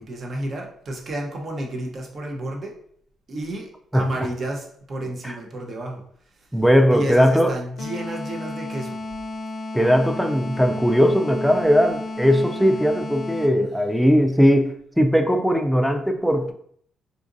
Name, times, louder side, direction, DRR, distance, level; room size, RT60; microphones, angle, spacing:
voice 1, 0.0-2.7 3.3-6.0 6.9-9.0, right 1 dB, 45° right, 1 dB, 0.7 m, -31 dB
voice 2, 3.9-4.3 5.2-5.3 6.5-7.5 9.7-16.5, equal, ahead, 5 dB, 0.4 m, -19 dB
sound 1, 7.8-13.7, left 2 dB, 65° left, 0.5 m, -33 dB
3.8 x 2.4 x 2.5 m, 0.64 s
cardioid pair, 90°, 0 cm